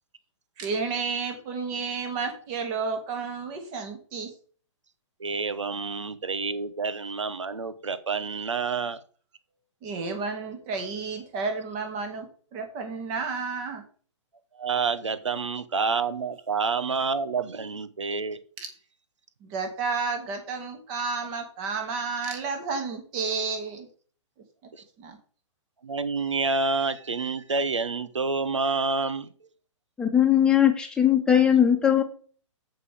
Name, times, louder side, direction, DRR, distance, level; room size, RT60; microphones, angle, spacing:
voice 1, 0.6-4.3 9.8-13.8 19.4-23.9 25.0-25.2, right 4 dB, 30° right, 5 dB, 2.5 m, -31 dB
voice 2, 5.2-9.0 14.5-18.4 24.7-24.8 25.8-29.3, right 4 dB, 70° right, 14 dB, 1.1 m, -28 dB
voice 3, 30.0-32.0, left 9 dB, 5° left, 2 dB, 1.5 m, -20 dB
14.0 x 5.5 x 3.7 m, 0.42 s
figure-of-eight pair, 120°, 16 cm